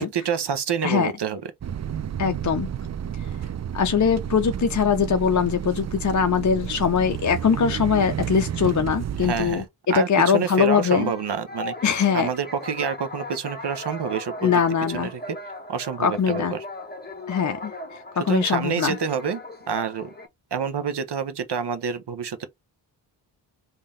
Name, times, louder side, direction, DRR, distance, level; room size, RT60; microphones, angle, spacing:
voice 1, 0.0-1.5 9.2-9.6 9.9-11.8 12.1-14.6 14.9-15.4 15.7-16.7 18.3-19.4 19.7-20.1 20.5-22.5, right 7 dB, 55° right, 0.8 m, -27 dB
sound 1, 1.6-9.7, right 9 dB, 35° right, 0.4 m, -31 dB
voice 2, 2.2-2.7 3.7-9.6 9.9-11.1 11.8-12.3 14.4-15.1 16.0-16.5 17.3-19.0, left 6 dB, 40° left, 0.5 m, -22 dB
sound 2, 10.9-20.3, left 1 dB, 20° left, 1.0 m, -38 dB
3.7 x 2.7 x 3.1 m
cardioid pair, 55°, 49 cm